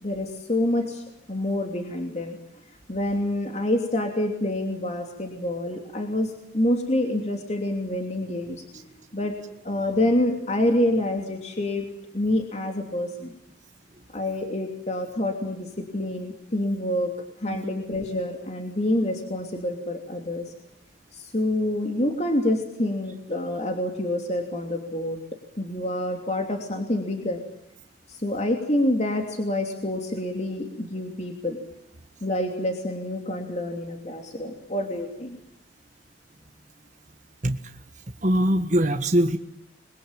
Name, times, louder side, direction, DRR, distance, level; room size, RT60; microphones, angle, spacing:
voice 1, 0.0-1.0 1.3-2.4 2.9-8.6 9.1-9.3 9.6-11.9 12.1-13.3 14.1-17.1 17.4-20.4 21.1-25.2 25.6-27.4 28.1-31.6 32.2-35.4, left 1 dB, 40° left, 3 dB, 3.0 m, -27 dB
voice 2, 38.2-39.4, right 1 dB, 45° right, 5 dB, 1.6 m, -22 dB
28.5 x 22.5 x 9.0 m, 0.82 s
head